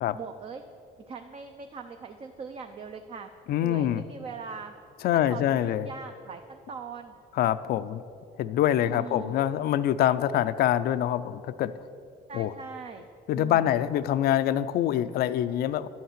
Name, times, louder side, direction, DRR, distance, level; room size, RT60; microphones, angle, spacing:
voice 1, 0.1-0.6 1.1-3.3 3.6-4.7 5.3-7.1 8.8-9.3 12.3-13.1 13.4-13.8, right 5 dB, 35° right, 6 dB, 0.5 m, -41 dB
voice 2, 3.5-4.0 5.0-5.9 7.4-8.0 8.4-11.7 12.3-12.5 13.3-15.9, left 11 dB, 65° left, 14 dB, 0.4 m, -25 dB
10.5 x 5.8 x 7.3 m, 2.5 s
cardioid pair, 110°, 17 cm